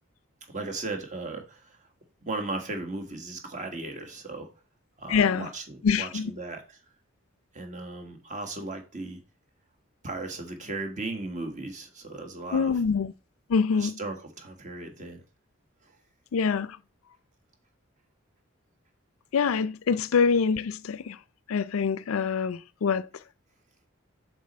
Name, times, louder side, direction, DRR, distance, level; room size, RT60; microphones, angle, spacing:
voice 1, 0.5-1.9 2.2-4.5 5.0-6.8 7.5-9.2 10.0-12.8 13.8-15.2 15.8-15.9 19.9-20.0, right 2 dB, 35° right, 1.7 m, -36 dB
voice 2, 5.1-5.5 5.8-6.3 12.5-13.1 13.5-14.0 16.3-16.8 19.3-21.2 21.5-23.1, left 5 dB, 85° left, 0.4 m, -25 dB
7.4 x 6.5 x 4.3 m
head